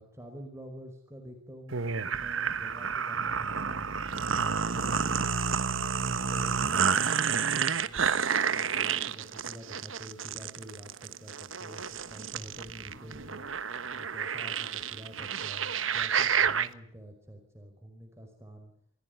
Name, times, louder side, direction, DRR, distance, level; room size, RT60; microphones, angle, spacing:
voice 1, 0.0-3.9 4.2-13.5 13.9-18.7, equal, 15° right, 3 dB, 5.1 m, -48 dB
sound 1, 1.7-16.7, right 6 dB, 70° right, 1.3 m, -30 dB
28.5 x 16.0 x 9.5 m, 0.64 s
head